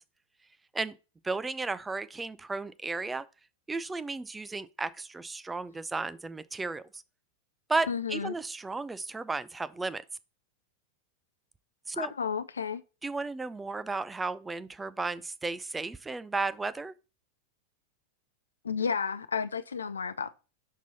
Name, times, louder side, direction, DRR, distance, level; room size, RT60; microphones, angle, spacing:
voice 1, 1.2-3.2 3.7-7.0 7.7-10.0 11.9-12.1 13.0-16.9, right 3 dB, 10° right, 0.4 m, -34 dB
voice 2, 7.9-8.3 11.9-12.8 18.6-20.3, left 6 dB, 70° left, 0.4 m, -32 dB
6.1 x 5.4 x 4.0 m
figure-of-eight pair, 90°, 0 cm